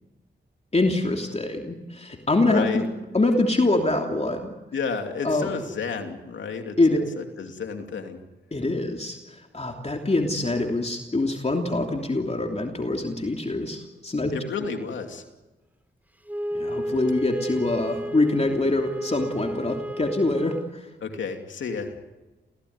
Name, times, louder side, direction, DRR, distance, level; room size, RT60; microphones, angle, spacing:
voice 1, 0.7-2.9 3.1-4.5 5.2-5.5 6.8-7.1 8.5-14.3 16.5-20.9, left 2 dB, 35° left, 2 dB, 3.1 m, -24 dB
voice 2, 2.5-2.8 4.7-6.8 7.2-8.2 14.3-15.2 21.0-21.9, left 5 dB, 90° left, 4 dB, 2.8 m, -31 dB
Wind instrument woodwind instrument, 16.3-20.7, equal, 10° right, 3.1 m, -32 dB
29.0 x 16.5 x 9.6 m, 1.1 s
cardioid pair, 55°, 19 cm